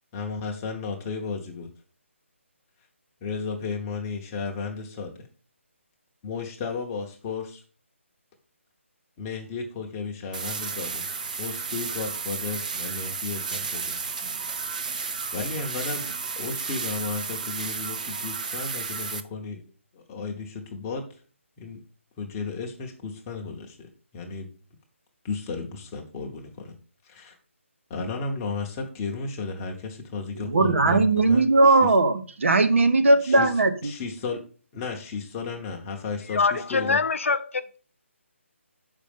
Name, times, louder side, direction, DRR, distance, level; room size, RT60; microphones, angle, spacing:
voice 1, 0.1-1.7 3.2-5.3 6.2-7.6 9.2-11.1 11.4-14.1 15.3-16.1 16.4-19.6 19.9-21.0 21.6-21.8 22.2-23.9 24.1-24.5 25.2-26.7 27.0-27.3 27.9-31.9 33.2-33.5 33.8-34.4 34.7-37.0, left 4 dB, 15° left, 0.8 m, -34 dB
sound 1, 10.3-19.2, right 5 dB, 35° right, 0.4 m, -32 dB
voice 2, 30.5-33.9, right 2 dB, 65° right, 1.0 m, -19 dB
voice 3, 36.3-37.8, left 4 dB, 70° left, 0.7 m, -24 dB
6.7 x 5.1 x 5.2 m
hypercardioid pair, 170°, 7 cm